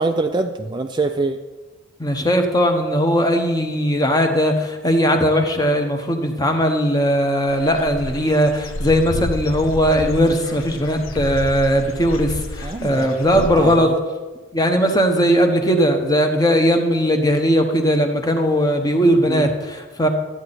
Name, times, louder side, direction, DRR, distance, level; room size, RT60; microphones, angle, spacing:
voice 1, 0.0-1.4 12.6-14.0 19.3-19.5, right 3 dB, 20° right, 6 dB, 0.3 m, -24 dB
voice 2, 2.0-13.9 14.5-20.1, equal, 20° left, 4 dB, 1.0 m, -18 dB
Dog / Bird, 7.5-13.8, left 1 dB, 70° left, 0.8 m, -31 dB
12.5 x 8.8 x 4.2 m, 1.3 s
head